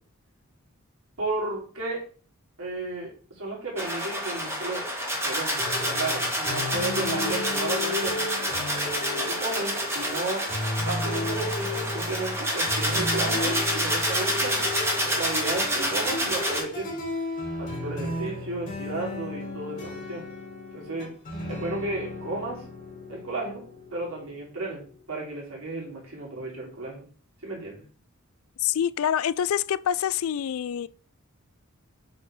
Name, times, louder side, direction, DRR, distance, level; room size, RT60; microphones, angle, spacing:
voice 1, 1.2-2.0 2.6-4.9 5.2-8.6 9.1-10.5 10.9-16.9 17.6-20.3 20.7-21.1 21.5-22.7 23.1-23.6 23.9-27.1 27.4-27.8, right 2 dB, 80° right, 3.6 m, -33 dB
sound 1, 3.8-16.6, equal, 10° right, 1.9 m, -28 dB
sound 2, 5.6-24.9, left 2 dB, 35° left, 3.7 m, -34 dB
voice 2, 28.6-30.9, left 9 dB, 75° left, 0.3 m, -26 dB
7.8 x 4.1 x 4.9 m
head